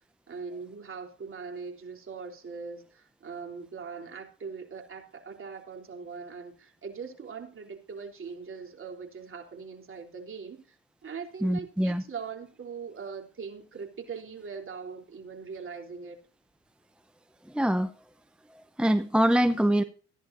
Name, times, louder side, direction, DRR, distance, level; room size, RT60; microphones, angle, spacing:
voice 1, 0.3-10.8 11.0-16.2, right 5 dB, 40° right, 3.5 m, -41 dB
voice 2, 11.4-12.0 17.5-17.9 18.5-19.8, equal, 5° right, 0.7 m, -24 dB
15.0 x 11.0 x 2.6 m
supercardioid pair, 65°, 33 cm